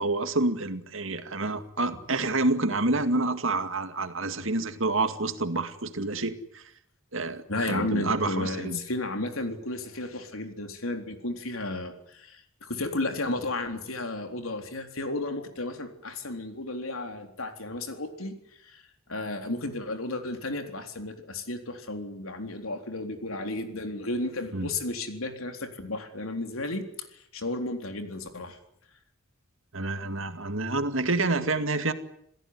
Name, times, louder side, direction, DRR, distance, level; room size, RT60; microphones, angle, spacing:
voice 1, 0.0-6.6 7.1-8.8 24.5-24.7 29.7-31.9, right 2 dB, 70° right, 8 dB, 2.3 m, -28 dB
voice 2, 7.5-12.4 12.7-18.3 18.6-18.8 19.1-26.8 27.3-28.6, left 2 dB, 90° left, 5 dB, 3.9 m, -33 dB
27.5 x 17.0 x 9.6 m, 0.74 s
head